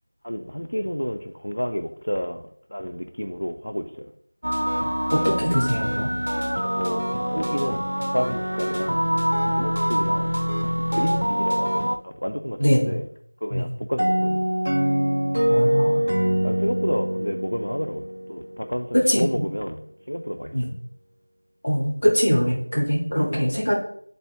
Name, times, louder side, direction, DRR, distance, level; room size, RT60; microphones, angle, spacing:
voice 1, 0.2-2.4 2.7-4.1 6.6-9.1 9.6-10.4 11.0-13.0 13.4-14.5 16.2-19.8 20.1-20.5, equal, 80° left, 0.7 m, -30 dB
sound 1, 4.4-12.0, equal, 80° right, 0.7 m, -25 dB
voice 2, 5.1-6.1 12.6-12.9 13.5-13.7 15.5-16.1 18.9-19.3 20.5-20.7 21.6-23.7, equal, 25° left, 1.4 m, -22 dB
sound 2, 14.0-18.6, equal, 35° right, 0.7 m, -23 dB
9.4 x 4.2 x 3.4 m
figure-of-eight pair, 180°, 0 cm